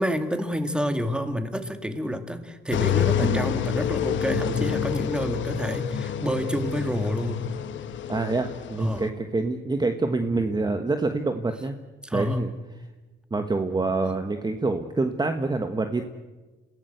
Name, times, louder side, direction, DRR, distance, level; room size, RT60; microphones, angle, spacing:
voice 1, 0.0-7.5 8.8-9.1 12.0-12.4, equal, 5° right, 7 dB, 2.2 m, -28 dB
sound 1, 2.7-9.1, left 9 dB, 70° left, 1.3 m, -28 dB
voice 2, 8.1-11.7 12.1-12.5 13.3-16.0, right 3 dB, 20° right, 7 dB, 1.3 m, -26 dB
27.0 x 16.0 x 8.0 m, 1.2 s
cardioid pair, 90°, 20 cm